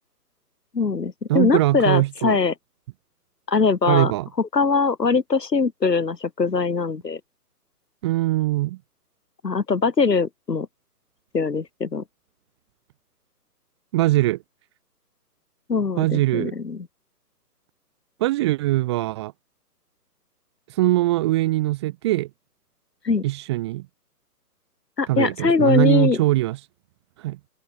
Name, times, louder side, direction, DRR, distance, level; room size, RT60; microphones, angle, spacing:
voice 1, 0.7-2.5 3.5-4.1 4.4-7.2 9.4-10.7 11.3-12.0 15.7-16.9 23.0-23.2 25.0-26.2, left 4 dB, 85° left, 2.8 m, -22 dB
voice 2, 1.3-2.4 3.9-4.3 8.0-8.8 13.9-14.4 16.0-16.5 18.2-19.3 20.8-22.3 23.2-23.8 25.1-26.6 27.2-27.4, right 17 dB, 15° right, 1.0 m, -21 dB
figure-of-eight pair, 145°, 48 cm